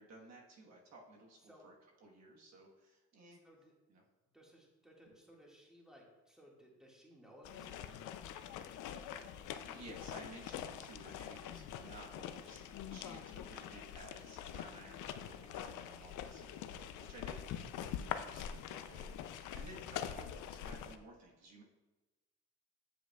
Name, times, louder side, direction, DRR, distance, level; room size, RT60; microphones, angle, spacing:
voice 1, 0.0-1.7 2.0-3.4 3.9-4.0 9.6-21.6, right 2 dB, 60° right, -1 dB, 1.3 m, -56 dB
voice 2, 4.3-8.0 13.5-13.8 20.1-20.5, equal, ahead, -2 dB, 1.8 m, -60 dB
sound 1, 7.4-21.0, left 9 dB, 80° left, 0.5 m, -45 dB
8.1 x 7.2 x 2.3 m, 1.1 s
cardioid pair, 90°, 30 cm